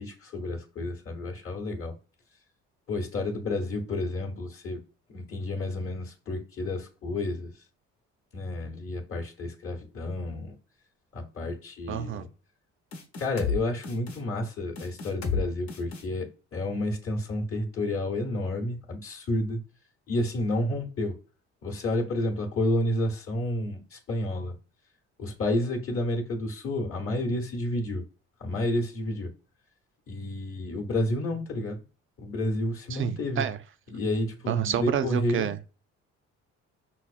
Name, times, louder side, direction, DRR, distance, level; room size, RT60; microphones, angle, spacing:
voice 1, 0.0-1.9 2.9-4.8 5.1-7.6 8.3-10.5 11.1-12.3 13.2-19.6 20.1-21.2 21.6-24.5 25.2-28.0 28.4-29.3 30.1-31.8 32.2-33.5 33.9-35.5, left 1 dB, 50° left, 0.9 m, -30 dB
voice 2, 11.9-12.2 32.9-33.6 34.5-35.6, right 8 dB, 45° right, 0.4 m, -28 dB
sound 1, 12.9-13.6 13.8-14.2 14.7-15.4 15.7-16.0, left 5 dB, 75° left, 1.0 m, -31 dB
5.6 x 2.0 x 2.4 m
cardioid pair, 80°, 29 cm